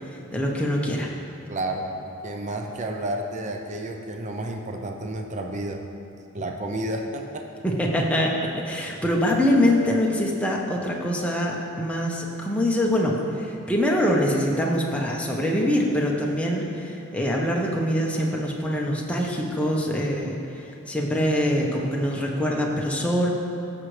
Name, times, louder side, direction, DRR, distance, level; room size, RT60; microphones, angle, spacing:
voice 1, 0.1-1.1 7.6-8.4 8.6-23.3, equal, 5° left, -2 dB, 0.9 m, -24 dB
voice 2, 1.5-1.9 2.2-5.8 6.3-7.5, right 1 dB, 35° right, 3 dB, 0.5 m, -31 dB
14.0 x 6.5 x 3.2 m, 2.8 s
head